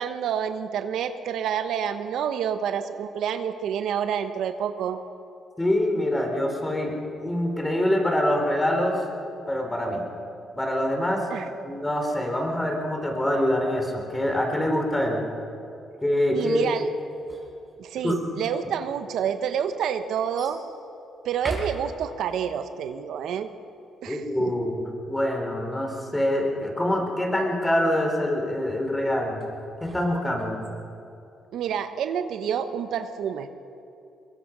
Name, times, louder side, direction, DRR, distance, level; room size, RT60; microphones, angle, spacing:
voice 1, 0.0-5.0 11.3-11.5 16.3-16.9 17.8-20.6 21.2-23.5 24.0-24.5 31.5-33.5, right 8 dB, 75° right, 9 dB, 1.0 m, -28 dB
voice 2, 5.6-9.0 9.5-10.1 10.5-11.3 11.6-15.2 16.0-16.7 18.0-18.1 24.1-29.4 29.8-30.6, left 1 dB, 15° left, 2 dB, 4.4 m, -25 dB
sound 1, 17.0-18.3 19.1-19.2 20.4-20.6 21.3-22.3 29.4-30.7, right 2 dB, 15° right, 5.0 m, -39 dB
22.0 x 22.0 x 6.2 m, 2.8 s
cardioid pair, 90°, 0 cm